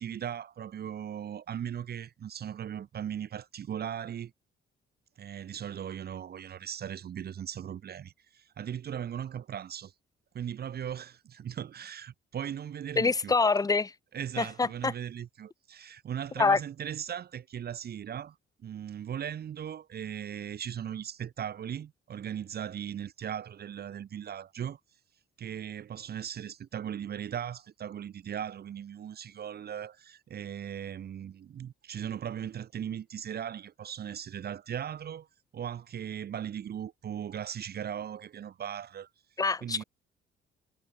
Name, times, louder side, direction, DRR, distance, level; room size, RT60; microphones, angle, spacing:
voice 1, 0.0-4.3 5.2-9.9 10.3-13.4 14.1-18.4 18.6-24.8 25.4-35.3 35.5-39.1 39.6-39.8, right 9 dB, 55° right, 1.0 m, -38 dB
voice 2, 13.0-13.9 14.4-14.9 16.4-16.6 39.4-39.8, left 4 dB, 20° left, 0.6 m, -25 dB
cardioid pair, 90°, 20 cm